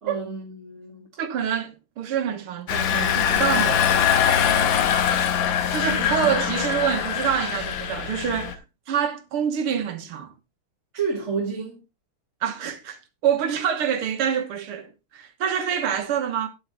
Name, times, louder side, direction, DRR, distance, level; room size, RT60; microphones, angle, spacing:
voice 1, 0.0-1.1 5.8-6.3 10.9-11.8, right 5 dB, 35° right, 1.7 m, -30 dB
voice 2, 1.2-4.1 5.7-10.3 12.4-16.5, right 8 dB, 85° right, 2.2 m, -26 dB
Engine, 2.7-8.5, left 9 dB, 65° left, 1.7 m, -22 dB
10.5 x 8.0 x 3.9 m
omnidirectional pair, 2.4 m